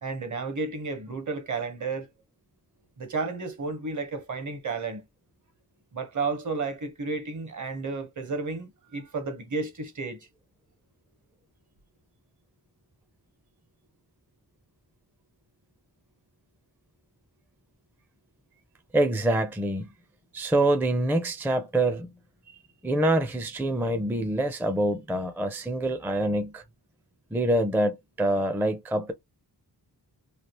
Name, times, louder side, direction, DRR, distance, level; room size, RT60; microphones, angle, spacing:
voice 1, 0.0-2.1 3.0-5.0 5.9-10.3, right 4 dB, 50° right, 0.9 m, -32 dB
voice 2, 18.9-19.9 20.3-22.1 22.5-22.6 22.8-26.6 27.3-29.1, right 1 dB, 5° right, 0.4 m, -25 dB
3.3 x 2.4 x 2.8 m
wide cardioid pair, 125°, 40 cm